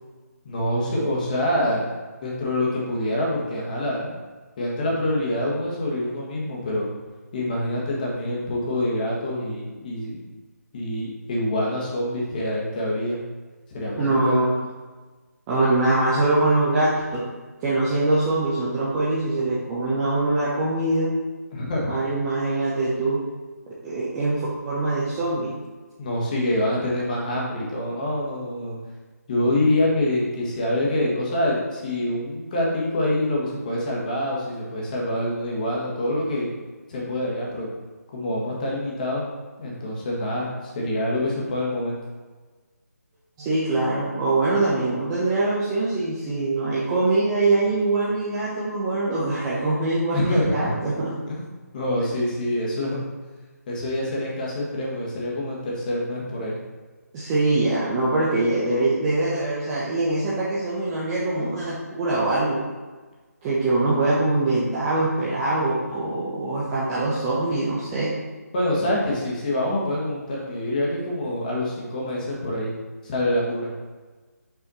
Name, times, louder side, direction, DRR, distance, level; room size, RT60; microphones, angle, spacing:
voice 1, 0.4-1.9 2.2-4.1 4.6-6.9 7.3-10.2 10.7-13.2 13.7-14.5 21.5-21.9 26.0-28.7 29.3-36.5 36.9-37.7 38.1-39.3 39.6-42.0 50.1-50.8 51.3-51.4 51.7-53.0 53.7-56.6 68.5-72.7 73.0-73.7, left 1 dB, 30° left, -4 dB, 1.5 m, -26 dB
voice 2, 14.0-14.6 15.5-17.2 17.6-21.1 21.9-23.2 23.8-25.5 43.4-51.1 57.1-62.6 63.4-68.1, right 2 dB, 15° right, -9 dB, 0.8 m, -23 dB
5.9 x 4.9 x 4.1 m, 1.3 s
figure-of-eight pair, 150°, 9 cm